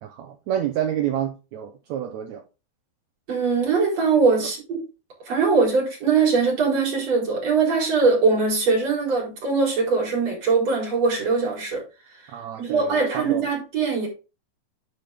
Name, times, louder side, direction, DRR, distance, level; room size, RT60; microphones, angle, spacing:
voice 1, 0.0-2.4 4.4-4.5 12.3-13.4, right 10 dB, 90° right, 1.5 m, -29 dB
voice 2, 3.3-4.8 5.3-11.8 12.6-14.1, right 4 dB, 45° right, 5.1 m, -21 dB
9.9 x 5.2 x 3.5 m
omnidirectional pair, 4.2 m